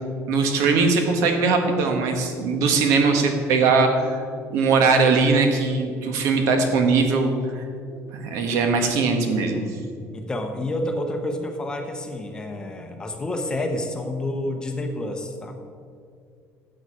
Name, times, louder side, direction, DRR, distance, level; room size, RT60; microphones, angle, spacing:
voice 1, 0.3-4.2 4.5-9.6, right 4 dB, 70° right, 5 dB, 1.4 m, -21 dB
voice 2, 10.1-15.6, left 1 dB, 15° left, 4 dB, 0.8 m, -29 dB
12.5 x 7.9 x 5.0 m, 2.3 s
cardioid pair, 180°, 6 cm